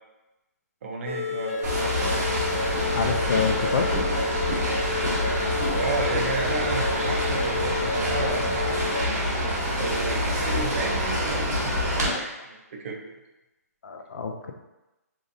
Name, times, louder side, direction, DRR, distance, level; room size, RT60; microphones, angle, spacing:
voice 1, 0.8-2.2 5.8-9.2 9.8-13.1, right 3 dB, 50° right, 1 dB, 0.5 m, -33 dB
sound 1, 1.1-9.0, left 4 dB, 45° left, 1.0 m, -30 dB
sound 2, 1.6-12.1, equal, 85° right, 1.0 m, -27 dB
Walk footsteps, 2.4-2.5 2.7-3.1 3.4-8.0, right 1 dB, 25° left, 1.1 m, -36 dB
voice 2, 2.9-3.9 13.8-14.5, left 5 dB, 75° left, 4 dB, 0.4 m, -27 dB
2.7 x 2.0 x 2.5 m, 1.0 s
hypercardioid pair, 150°, 9 cm